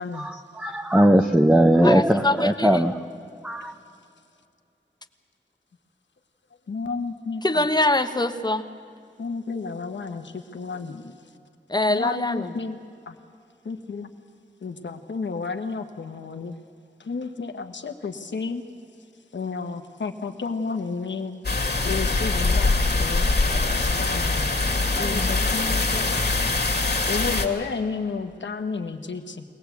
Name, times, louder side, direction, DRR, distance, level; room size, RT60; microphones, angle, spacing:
voice 1, 0.2-2.9 3.4-3.7, right 1 dB, 5° right, 5 dB, 0.8 m, -19 dB
voice 2, 1.8-2.8 7.4-8.7 11.7-12.5 24.9-25.4, left 2 dB, 25° left, 8 dB, 1.2 m, -24 dB
voice 3, 6.7-7.6 9.2-11.2 11.9-12.8 13.1-13.2 13.6-14.1 14.6-16.5 17.0-18.6 19.3-21.4 21.8-22.7 23.0-24.5 25.0-26.3 27.1-29.4, left 4 dB, 90° left, 7 dB, 1.4 m, -31 dB
sound 1, 21.4-27.5, left 3 dB, 60° left, 2.3 m, -23 dB
23.0 x 18.5 x 8.3 m, 2.4 s
wide cardioid pair, 70°, 18 cm